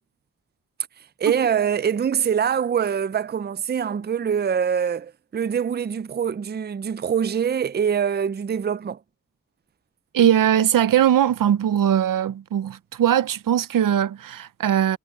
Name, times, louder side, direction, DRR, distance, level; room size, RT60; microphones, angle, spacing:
voice 1, 1.2-9.0, right 7 dB, 30° right, 0.5 m, -24 dB
voice 2, 10.1-15.0, right 10 dB, 85° right, 0.6 m, -20 dB
wide cardioid pair, 85°, 32 cm